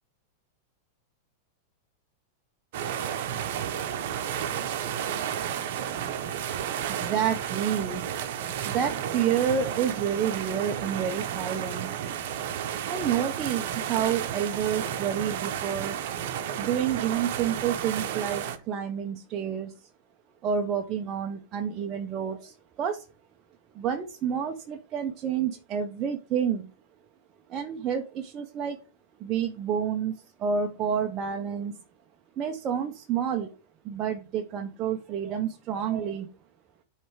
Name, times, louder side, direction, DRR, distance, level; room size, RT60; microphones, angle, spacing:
sound 1, 2.7-18.6, right 9 dB, 65° right, 0.9 m, -32 dB
voice 1, 6.9-8.1 8.7-12.0 12.8-16.0 16.6-19.8 20.4-23.1 23.7-26.7 27.5-28.8 29.2-31.8 32.4-33.5 33.8-36.3, right 8 dB, 35° right, 0.7 m, -29 dB
7.8 x 3.3 x 4.7 m
hypercardioid pair, 115°, 0 cm